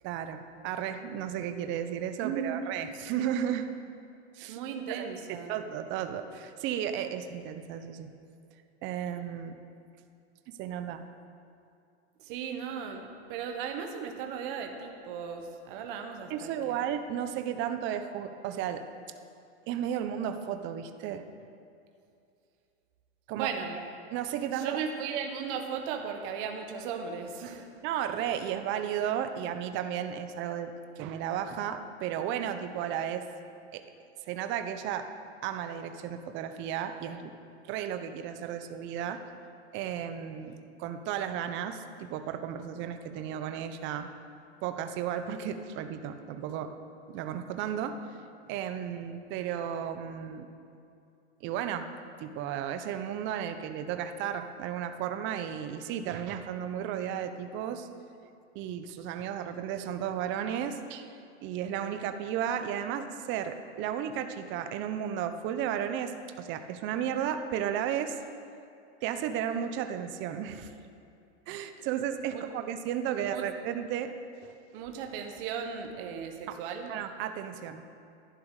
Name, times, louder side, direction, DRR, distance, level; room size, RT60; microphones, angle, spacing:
voice 1, 0.0-3.7 4.3-4.6 4.9-8.1 8.8-9.6 10.6-11.0 16.3-18.8 19.7-21.2 23.3-23.5 24.1-24.8 27.8-33.3 33.7-33.8 34.2-35.1 35.4-37.3 37.6-39.2 39.7-44.1 44.6-46.7 47.1-48.0 48.5-50.5 51.4-51.9 52.2-57.9 58.5-61.1 61.4-66.1 66.4-68.2 69.0-70.7 71.5-74.1 74.4-74.5 76.5-76.6 76.9-77.8, right 9 dB, 35° right, 8 dB, 0.8 m, -34 dB
voice 2, 2.2-2.6 4.5-5.5 12.2-16.8 23.3-23.8 24.5-27.7 72.3-72.4 73.3-73.5 74.7-76.9, right 7 dB, 50° right, 4 dB, 1.3 m, -36 dB
11.0 x 11.0 x 4.9 m, 2.5 s
supercardioid pair, 135°, 33 cm